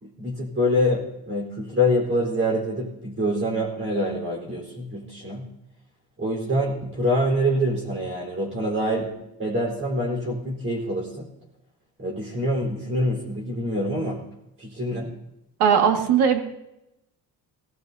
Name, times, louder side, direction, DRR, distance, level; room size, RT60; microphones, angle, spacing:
voice 1, 0.0-5.5 6.2-9.1 9.4-11.3 12.0-14.2 14.6-15.1, equal, 30° right, -3 dB, 4.5 m, -25 dB
voice 2, 15.6-16.4, right 7 dB, 80° right, 4 dB, 2.2 m, -18 dB
20.5 x 18.0 x 2.8 m, 0.89 s
cardioid pair, 110°, 40 cm